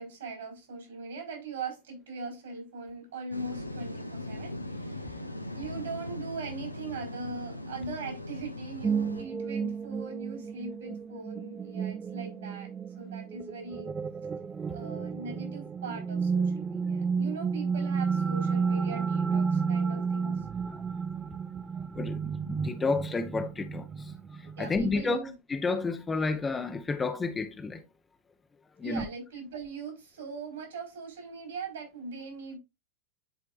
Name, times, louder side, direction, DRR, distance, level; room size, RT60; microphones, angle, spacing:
voice 1, 0.0-5.2 5.5-13.9 14.7-20.5 24.6-25.3 28.8-32.6, right 4 dB, 65° right, 4.5 m, -40 dB
sound 1, 3.3-9.2, left 1 dB, 85° left, 0.7 m, -39 dB
sound 2, 8.8-25.0, right 5 dB, 20° right, 0.4 m, -32 dB
voice 2, 21.9-24.1 24.6-25.2 25.5-27.8 28.8-29.0, left 3 dB, 15° left, 0.8 m, -30 dB
10.5 x 4.6 x 2.5 m
figure-of-eight pair, 90°, 0 cm